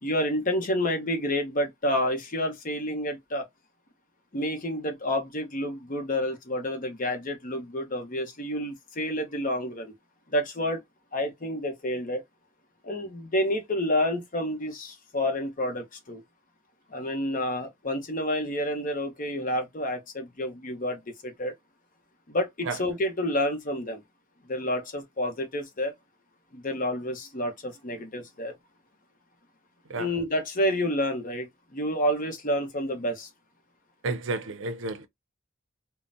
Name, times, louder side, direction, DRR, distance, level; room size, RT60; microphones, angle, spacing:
voice 1, 0.0-3.5 4.3-9.9 10.3-10.8 11.1-12.2 12.8-16.2 16.9-21.5 22.3-24.0 24.4-25.9 26.5-28.5 29.9-33.3, left 1 dB, 45° left, 0.9 m, -29 dB
voice 2, 34.0-35.1, right 3 dB, 70° right, 0.5 m, -31 dB
3.7 x 2.1 x 2.5 m
head